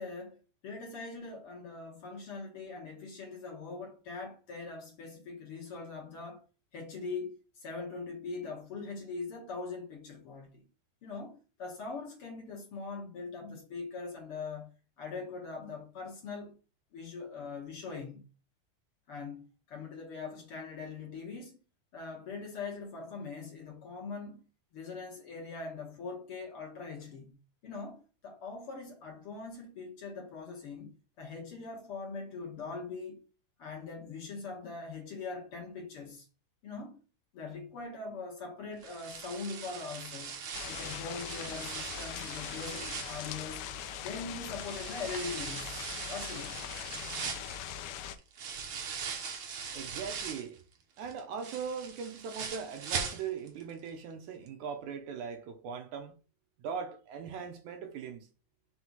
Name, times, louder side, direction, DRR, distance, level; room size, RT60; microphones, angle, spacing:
voice 1, 0.0-6.4 6.7-10.6 11.0-14.7 15.0-16.5 16.9-18.2 19.1-21.5 21.9-24.4 24.7-27.4 27.6-33.2 33.6-36.3 36.6-37.0 37.3-40.4 40.7-43.7 44.0-46.7, left 4 dB, 50° left, 2.2 m, -42 dB
sound 1, 38.8-44.1 44.6-50.6 51.0-53.6 53.9-54.0 54.5-54.6, right 6 dB, 60° right, 1.5 m, -41 dB
sound 2, 40.5-48.2, left 9 dB, 75° left, 1.9 m, -41 dB
voice 2, 49.7-50.6 51.0-56.2 56.6-58.3, right 6 dB, 75° right, 2.1 m, -40 dB
6.2 x 3.4 x 5.5 m
omnidirectional pair, 3.7 m